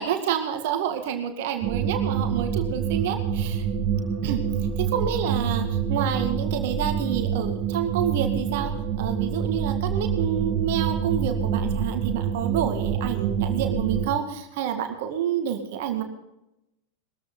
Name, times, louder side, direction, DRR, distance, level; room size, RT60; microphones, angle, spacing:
voice 1, 0.0-3.6 4.2-4.4 4.8-16.0, right 9 dB, 55° right, 6 dB, 2.1 m, -28 dB
sound 1, 1.6-14.1, right 7 dB, 30° right, 2.4 m, -26 dB
21.0 x 14.5 x 4.0 m, 0.89 s
figure-of-eight pair, 90°, 0 cm